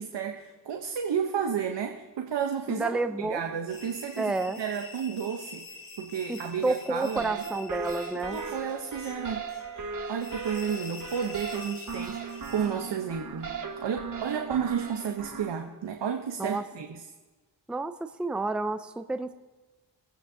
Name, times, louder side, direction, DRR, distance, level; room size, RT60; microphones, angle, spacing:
voice 1, 0.0-5.6 6.0-7.5 8.3-9.4 10.1-13.5 13.8-17.0, right 7 dB, 65° right, 4 dB, 1.0 m, -32 dB
voice 2, 2.7-3.4 4.2-4.6 6.3-8.4 16.4-16.6 17.7-19.4, right 2 dB, ahead, 10 dB, 0.5 m, -30 dB
sound 1, 3.7-12.8, left 4 dB, 50° left, 1.8 m, -46 dB
sound 2, 7.2-15.5, right 5 dB, 45° right, 1.5 m, -38 dB
22.0 x 9.1 x 2.8 m, 1.3 s
cardioid pair, 60°, 45 cm